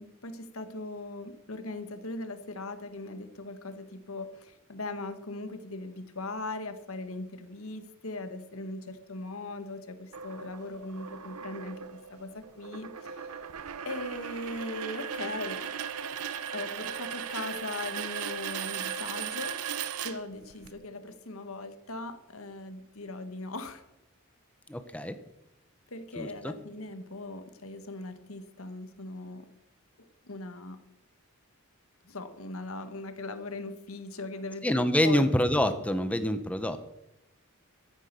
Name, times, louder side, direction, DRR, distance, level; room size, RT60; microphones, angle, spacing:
voice 1, 0.0-13.4 13.8-15.7 16.5-19.6 20.0-23.8 25.9-29.5 30.0-30.9 32.0-35.2, left 2 dB, 70° left, 9 dB, 1.5 m, -39 dB
sound 1, 10.1-20.7, right 8 dB, 90° right, 0.8 m, -37 dB
voice 2, 24.7-25.2 26.2-26.5 34.6-36.8, left 1 dB, 5° left, 10 dB, 0.8 m, -26 dB
13.5 x 9.8 x 6.8 m, 0.89 s
head